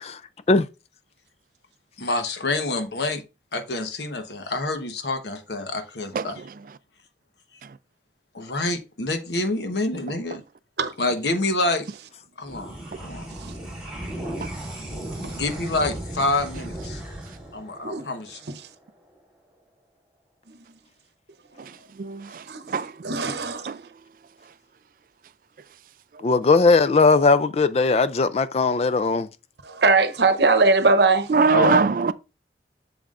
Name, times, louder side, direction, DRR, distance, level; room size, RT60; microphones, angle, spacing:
voice 1, 2.0-3.2 3.5-6.4 8.3-10.4 11.0-11.8 12.4-12.8 13.0-13.3 15.3-17.0 17.5-18.4, left 2 dB, 75° left, 1.1 m, -27 dB
voice 2, 6.1-6.5 14.4-14.5 21.6-22.9 23.7-23.8 31.3-32.1, right 4 dB, 50° right, 0.3 m, -23 dB
sound 1, 12.4-19.2, right 1 dB, 5° right, 3.6 m, -36 dB
voice 3, 22.5-23.7 29.6-31.3, right 3 dB, 75° right, 0.8 m, -21 dB
voice 4, 26.2-29.3 31.5-31.7, left 4 dB, 35° left, 0.3 m, -18 dB
7.5 x 7.0 x 2.5 m
head